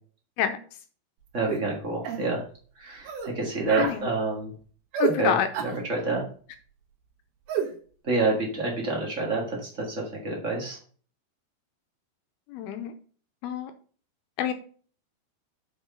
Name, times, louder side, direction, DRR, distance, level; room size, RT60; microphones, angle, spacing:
voice 1, 1.3-2.4 2.8-4.5 5.2-5.3 5.9-6.3 8.0-10.8, right 3 dB, 85° right, -1 dB, 0.6 m, -28 dB
sound 1, 1.5-1.7 2.1-2.3 3.1-3.3 3.7-4.0 4.9-5.2 5.5-5.8 7.5-7.7, right 7 dB, 70° right, 3.2 m, -28 dB
voice 2, 3.8-4.1 5.0-5.5 12.5-12.9 13.4-13.7 14.4-14.5, left 9 dB, 80° left, 7 dB, 2.5 m, -27 dB
6.4 x 5.9 x 5.4 m, 0.42 s
omnidirectional pair, 4.7 m